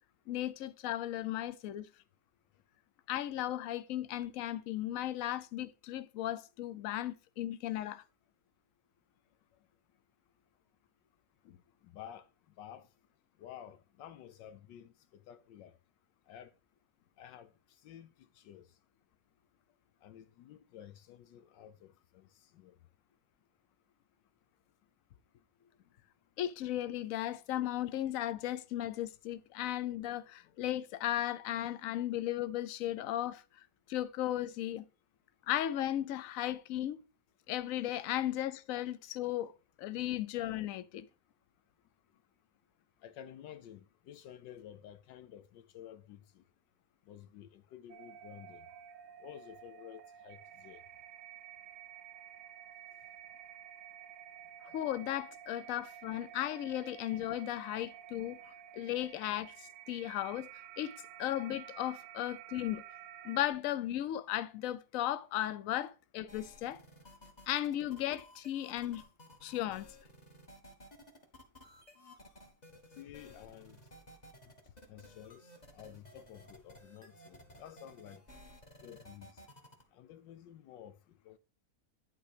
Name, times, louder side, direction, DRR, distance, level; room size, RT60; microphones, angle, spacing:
voice 1, 0.3-1.9 3.1-8.0 11.5-11.6 26.4-34.8 35.5-37.0 37.5-39.5 39.8-41.1 54.7-60.5 60.8-62.8 63.2-66.8 67.5-69.0 69.4-69.9, left 13 dB, 65° left, 0.9 m, -36 dB
voice 2, 11.8-12.3 12.6-12.9 13.4-15.7 16.3-16.5 17.2-17.5 17.8-18.7 20.0-22.3 22.5-22.8 37.9-38.0 43.0-46.4 47.1-48.7 49.2-50.8 73.0-73.8 74.9-78.2 78.8-79.3 79.9-81.0 81.2-81.4, left 10 dB, 85° left, 1.4 m, -52 dB
sound 1, 47.9-63.5, right 10 dB, 80° right, 1.2 m, -52 dB
sound 2, 66.3-79.8, left 1 dB, 25° left, 1.5 m, -56 dB
11.0 x 3.8 x 4.9 m
omnidirectional pair, 1.9 m